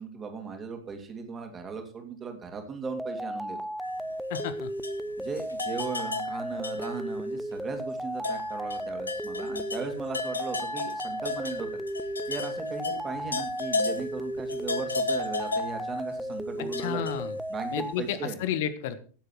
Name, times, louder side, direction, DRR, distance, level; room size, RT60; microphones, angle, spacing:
voice 1, 0.0-3.6 5.2-11.7 12.3-17.0 17.5-18.4, right 5 dB, 20° right, 5 dB, 2.9 m, -37 dB
sound 1, 2.8-17.9, equal, ahead, 0.5 m, -35 dB
sound 2, 3.8-7.3 7.5-7.7 8.2-17.8, left 3 dB, 80° left, 1.3 m, -35 dB
voice 2, 4.3-4.7 16.8-17.4 17.7-19.0, left 9 dB, 50° left, 13 dB, 1.3 m, -31 dB
16.5 x 8.0 x 4.6 m, 0.40 s
figure-of-eight pair, 90°, 0 cm